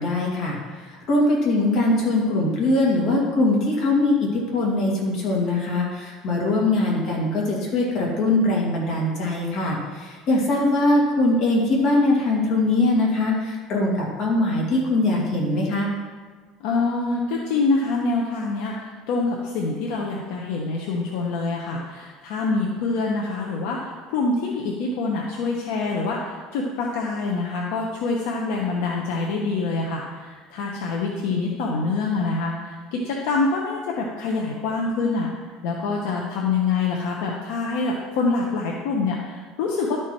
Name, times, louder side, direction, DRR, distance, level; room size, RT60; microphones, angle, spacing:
voice 1, 0.0-15.9, left 2 dB, 45° left, -2 dB, 2.2 m, -22 dB
voice 2, 1.7-2.1 16.6-35.3 35.6-40.0, left 3 dB, 70° left, -1 dB, 1.0 m, -25 dB
11.5 x 4.6 x 4.6 m, 1.5 s
cardioid pair, 155°, 0 cm